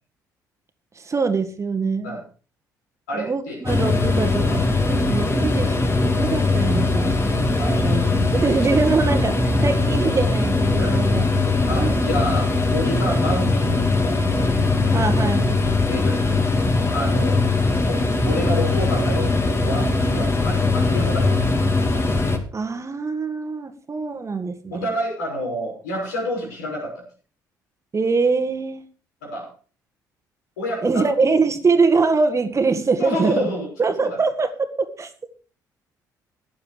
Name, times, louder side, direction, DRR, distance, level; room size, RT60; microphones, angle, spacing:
voice 1, 1.0-2.2 3.1-7.3 7.6-11.3 11.7-11.9 14.9-15.5 22.5-24.9 27.9-28.8 30.8-33.5 33.8-34.5 35.0-35.1, right 4 dB, 30° right, 8 dB, 1.8 m, -23 dB
voice 2, 3.1-3.6 4.5-4.6 7.0-7.1 7.6-8.0 8.3-8.5 9.6-9.7 10.8-11.0 11.7-14.2 15.9-16.5 16.9-17.5 17.9-21.4 24.7-27.0 29.2-29.5 30.6-31.3 33.0-34.2, equal, 75° left, 0 dB, 5.9 m, -29 dB
sound 1, 3.7-22.4, left 3 dB, 25° left, 2.7 m, -20 dB
16.0 x 9.5 x 4.8 m, 0.39 s
figure-of-eight pair, 50°, 10 cm